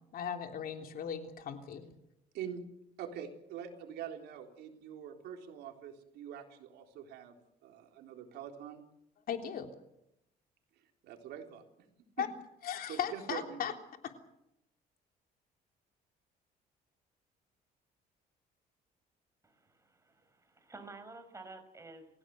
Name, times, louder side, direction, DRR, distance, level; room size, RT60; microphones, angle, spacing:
voice 1, 0.1-1.9 9.3-9.7 12.2-12.3 12.6-13.7 14.0-14.1, left 8 dB, 60° left, 5 dB, 3.4 m, -37 dB
voice 2, 3.0-7.4 7.6-8.8 11.0-11.6 12.9-13.6, right 8 dB, 80° right, 4 dB, 3.9 m, -44 dB
voice 3, 19.4-22.1, right 3 dB, 15° right, 7 dB, 5.6 m, -51 dB
29.5 x 16.5 x 7.9 m, 0.82 s
cardioid pair, 110°, 17 cm